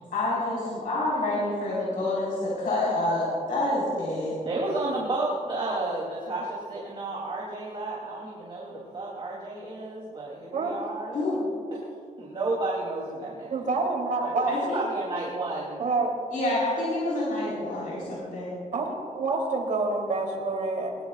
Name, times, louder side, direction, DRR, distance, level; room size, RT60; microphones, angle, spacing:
voice 1, 0.0-4.4 11.1-11.4 14.5-14.8 16.3-18.6, left 2 dB, 90° left, -7 dB, 4.6 m, -28 dB
voice 2, 4.4-11.1 12.2-13.5 14.2-15.8, right 2 dB, 40° right, -5 dB, 3.0 m, -32 dB
voice 3, 13.5-14.5 15.8-16.1 18.7-21.1, right 3 dB, 70° right, 0 dB, 3.3 m, -27 dB
21.5 x 20.5 x 2.5 m, 2.3 s
wide cardioid pair, 145°, 14 cm